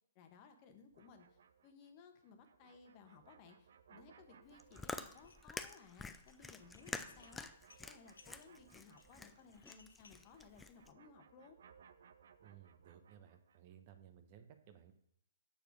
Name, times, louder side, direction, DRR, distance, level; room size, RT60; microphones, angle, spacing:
voice 1, 0.1-11.6, left 5 dB, 35° left, 6 dB, 1.2 m, -60 dB
sound 1, 0.9-9.8 10.1-13.8, right 7 dB, 60° right, 0.7 m, -66 dB
Chewing mastication, 4.4-10.9, left 3 dB, 10° left, 0.4 m, -48 dB
Dishes pots and pans, 5.1-5.7 6.1-10.3, left 4 dB, 70° left, 1.0 m, -65 dB
voice 2, 12.4-14.9, right 9 dB, 40° right, 8 dB, 1.0 m, -59 dB
7.0 x 6.7 x 6.2 m, 0.70 s
figure-of-eight pair, 130°, 0 cm